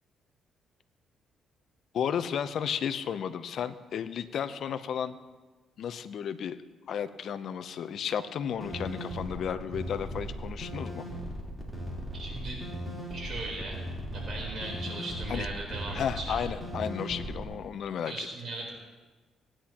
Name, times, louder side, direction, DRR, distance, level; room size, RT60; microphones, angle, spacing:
voice 1, 1.9-5.2 5.8-6.6 6.9-11.0 15.3-15.5 15.9-18.1, left 8 dB, 65° left, 11 dB, 0.7 m, -33 dB
sound 1, 8.6-17.4, equal, 5° right, 3.7 m, -38 dB
voice 2, 12.1-12.6 13.1-13.8 14.1-16.4 18.1-18.7, right 2 dB, 55° right, -2 dB, 3.9 m, -38 dB
19.0 x 10.0 x 3.0 m, 1.3 s
cardioid pair, 90°, 0 cm